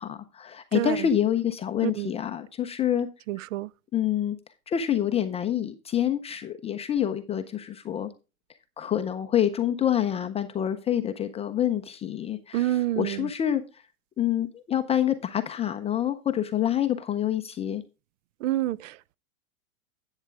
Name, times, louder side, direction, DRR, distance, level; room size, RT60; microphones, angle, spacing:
voice 1, 0.0-3.1 3.9-4.4 4.7-8.1 8.8-13.6 14.2-17.8, left 10 dB, 15° left, 0.5 m, -27 dB
voice 2, 3.3-3.7 12.5-13.3 18.4-19.1, right 14 dB, 60° right, 0.5 m, -28 dB
11.0 x 8.2 x 3.4 m
hypercardioid pair, 125°, 43 cm